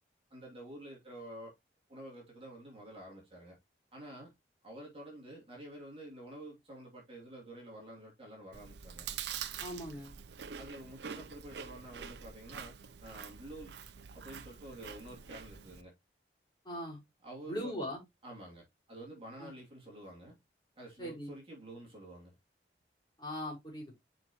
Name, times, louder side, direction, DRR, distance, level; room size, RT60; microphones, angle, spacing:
voice 1, 0.3-1.5 1.9-3.6 3.9-4.3 4.6-9.1 10.6-13.7 14.1-15.9 17.2-17.7 18.2-20.3 20.8-22.3, right 1 dB, 30° right, 2.9 m, -49 dB
Chewing mastication, 8.5-15.8, right 7 dB, 75° right, 0.6 m, -45 dB
voice 2, 9.6-10.1 16.6-17.0 17.5-18.0 19.4-19.5 21.0-21.3 23.2-23.9, equal, 25° left, 3.9 m, -40 dB
7.0 x 5.4 x 3.0 m
head